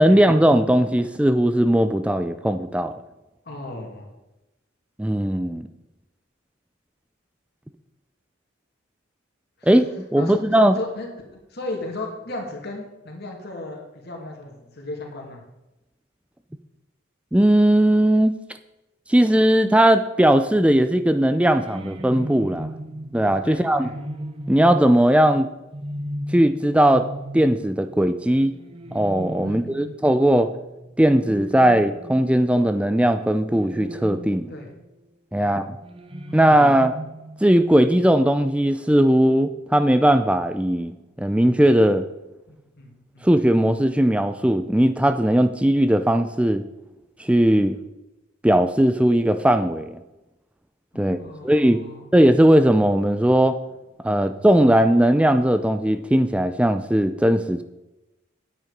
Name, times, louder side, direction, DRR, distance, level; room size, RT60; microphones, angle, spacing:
voice 1, 0.0-2.9 5.0-5.7 9.7-10.7 17.3-18.3 19.1-22.7 23.1-23.9 24.5-25.5 26.3-27.1 27.3-28.5 28.9-30.5 31.0-34.5 35.3-35.8 36.3-36.9 37.4-40.9 41.2-42.0 43.2-46.6 47.2-47.8 48.4-50.0 51.0-51.8 52.1-53.6 54.0-57.6, right 1 dB, 5° right, 10 dB, 0.4 m, -18 dB
voice 2, 3.4-4.1 9.6-9.7 10.2-11.1 11.5-15.4 23.4-23.9 29.4-30.0 34.5-34.7 35.4-35.6 42.5-43.3 50.9-52.0, left 2 dB, 50° left, 1 dB, 2.5 m, -35 dB
sound 1, 21.2-32.8 33.5-34.9 35.8-37.4, right 1 dB, 25° right, 0.8 m, -36 dB
9.5 x 8.9 x 5.2 m, 0.97 s
head